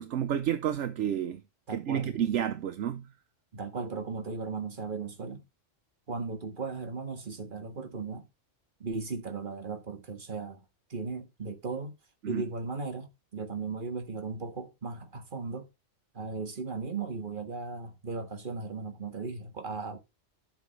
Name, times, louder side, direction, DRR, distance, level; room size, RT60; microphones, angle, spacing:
voice 1, 0.0-1.4 1.7-3.1 12.2-12.4, right 10 dB, 70° right, 1.0 m, -30 dB
voice 2, 1.7-2.1 3.5-5.4 6.1-8.3 8.8-10.6 10.9-11.9 12.3-15.7 16.1-20.0, right 4 dB, 40° right, 1.7 m, -36 dB
11.5 x 6.9 x 3.1 m
omnidirectional pair, 1.3 m